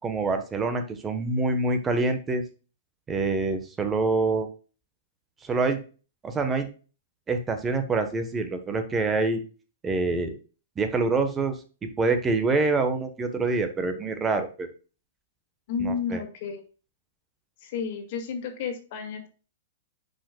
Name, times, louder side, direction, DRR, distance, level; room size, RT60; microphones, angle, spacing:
voice 1, 0.0-2.4 3.1-4.5 5.4-5.8 6.2-6.7 7.3-9.4 9.8-10.3 10.8-11.6 12.0-14.7 15.8-16.2, right 3 dB, 15° right, 7 dB, 1.2 m, -26 dB
voice 2, 15.7-16.6 17.6-19.3, left 6 dB, 55° left, 5 dB, 1.9 m, -31 dB
10.0 x 5.3 x 2.3 m, 0.35 s
hypercardioid pair, 125°, 0 cm